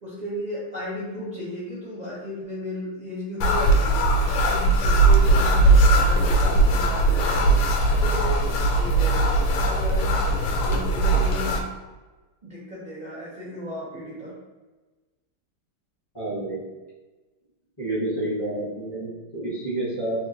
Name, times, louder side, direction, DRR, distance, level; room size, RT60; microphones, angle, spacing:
voice 1, 0.0-4.1 4.5-7.5 8.0-10.2 10.6-11.6 12.4-14.3, left 1 dB, 60° right, -8 dB, 0.4 m, -35 dB
sound 1, 3.4-11.6, right 2 dB, 85° left, 1.5 m, -19 dB
voice 2, 16.1-16.6 17.8-20.1, right 1 dB, 20° left, -9 dB, 0.6 m, -29 dB
3.6 x 2.8 x 2.7 m, 1.2 s
omnidirectional pair, 2.4 m